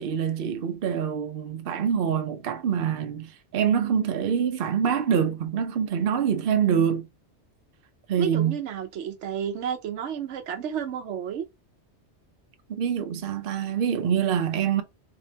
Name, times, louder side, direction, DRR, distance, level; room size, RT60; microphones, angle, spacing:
voice 1, 0.0-7.1 8.1-8.6 12.7-14.8, right 8 dB, 60° right, 0.8 m, -25 dB
voice 2, 8.2-11.5, right 8 dB, 85° right, 1.0 m, -31 dB
3.6 x 3.4 x 2.7 m
omnidirectional pair, 1.2 m